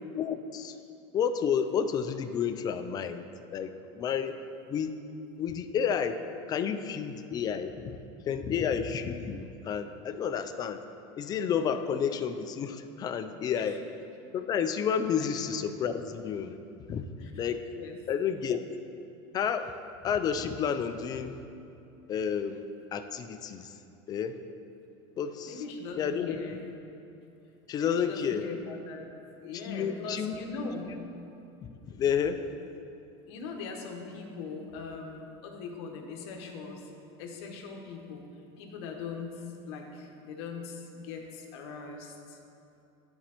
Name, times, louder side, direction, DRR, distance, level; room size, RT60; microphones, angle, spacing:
voice 1, 0.1-0.8 1.1-3.2 3.5-4.4 4.7-5.0 5.4-6.2 6.5-8.0 8.3-10.8 11.2-13.8 14.3-16.6 16.9-17.6 18.1-18.6 19.3-19.7 20.0-21.4 22.1-22.6 22.9-23.8 24.1-24.4 25.2-25.6 25.9-26.4 27.7-28.4 29.5-30.3 30.9-31.0 31.8-32.4, left 7 dB, 25° left, 9 dB, 0.3 m, -30 dB
voice 2, 25.4-26.7 27.8-29.1 29.4-31.0 33.3-36.9 37.2-38.2 38.6-42.4, left 4 dB, 75° left, 2 dB, 1.0 m, -40 dB
12.5 x 4.2 x 2.9 m, 2.7 s
supercardioid pair, 140°, 14 cm